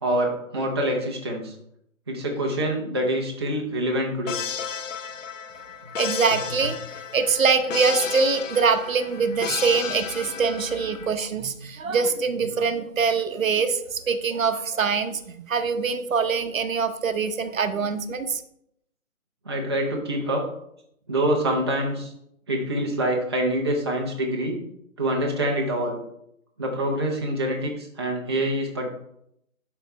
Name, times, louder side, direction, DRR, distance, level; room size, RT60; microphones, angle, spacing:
voice 1, 0.0-1.5 2.1-4.4 19.4-20.4 21.1-22.1 22.5-24.6 25.0-26.0 26.6-28.9, right 1 dB, 20° right, -1 dB, 0.6 m, -25 dB
sound 1, 4.3-11.1, left 7 dB, 65° left, 0.6 m, -33 dB
voice 2, 6.0-6.8 7.1-18.4, right 5 dB, 70° right, 9 dB, 0.9 m, -24 dB
11.5 x 3.8 x 3.3 m, 0.76 s
hypercardioid pair, 160°, 42 cm